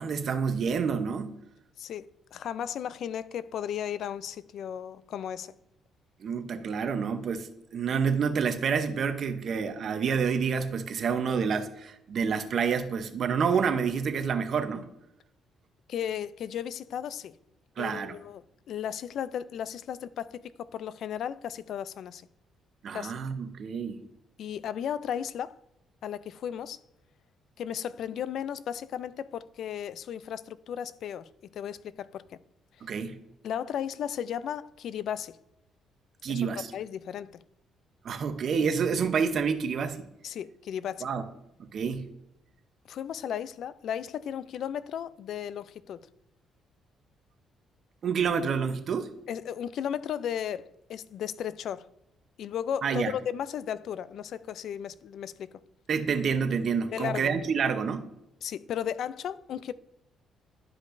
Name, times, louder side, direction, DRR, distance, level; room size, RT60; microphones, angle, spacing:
voice 1, 0.0-1.4 6.2-14.8 17.8-18.2 22.8-24.0 32.8-33.2 36.2-36.7 38.0-40.0 41.0-41.2 41.6-42.0 48.0-49.1 52.8-53.1 55.9-58.1, right 6 dB, 50° right, 0.7 m, -28 dB
voice 2, 1.8-5.5 15.9-17.3 17.8-22.2 22.9-23.2 24.4-25.6 26.0-26.8 27.6-32.2 33.4-35.4 36.3-36.5 36.7-37.4 40.2-41.1 42.9-46.1 49.3-51.9 52.4-55.5 56.9-57.3 58.4-59.7, left 9 dB, 65° left, 0.3 m, -35 dB
11.5 x 5.2 x 2.6 m
cardioid pair, 125°, 0 cm